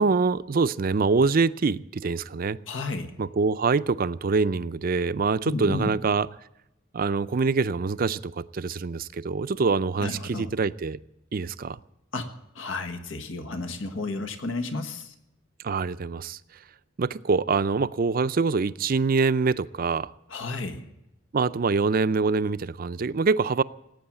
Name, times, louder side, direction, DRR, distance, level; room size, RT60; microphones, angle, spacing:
voice 1, 0.0-2.6 3.2-6.3 6.9-11.0 11.3-11.8 15.6-16.4 17.0-20.1 21.3-23.6, right 4 dB, 50° right, 14 dB, 0.5 m, -25 dB
voice 2, 2.7-3.1 5.4-5.9 10.0-10.5 12.1-12.3 12.5-15.1 20.3-20.8, left 3 dB, 85° left, 7 dB, 1.5 m, -32 dB
18.0 x 8.9 x 8.8 m, 0.88 s
head